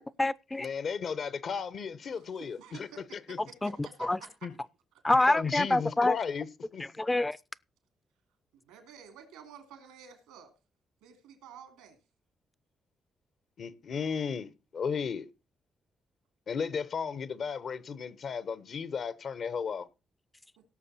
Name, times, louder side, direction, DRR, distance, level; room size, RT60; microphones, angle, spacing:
voice 1, 0.0-0.7 3.6-4.2 5.0-6.2 6.8-7.4, left 2 dB, 20° left, 0.6 m, -27 dB
voice 2, 0.6-2.9 3.3-3.4 4.4-4.5 5.3-6.8 13.6-15.3 16.5-19.9, left 6 dB, 60° left, 1.1 m, -34 dB
voice 3, 2.1-4.3 8.5-10.5 11.0-12.0 20.6-20.7, right 7 dB, 85° right, 3.0 m, -51 dB
17.0 x 6.7 x 4.3 m
hypercardioid pair, 45°, 0 cm